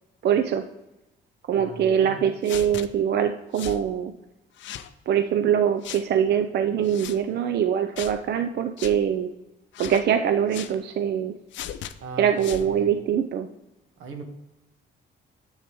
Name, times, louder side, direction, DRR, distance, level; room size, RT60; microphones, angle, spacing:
voice 1, 0.2-0.6 1.5-4.1 5.1-9.3 9.8-11.3 12.2-13.5, right 8 dB, 60° right, 8 dB, 0.5 m, -23 dB
voice 2, 1.5-2.2 12.0-12.9 14.0-14.2, right 4 dB, 85° right, 4 dB, 1.4 m, -39 dB
sound 1, 2.4-2.9 3.5-3.8 4.6-4.9 5.8-6.1 6.8-7.2 8.0-8.2 8.8-9.0 9.7-10.1 10.5-10.7 11.5-11.9 12.4-12.7, left 10 dB, 70° left, 0.5 m, -37 dB
9.4 x 7.3 x 3.0 m, 0.94 s
cardioid pair, 90°, 20 cm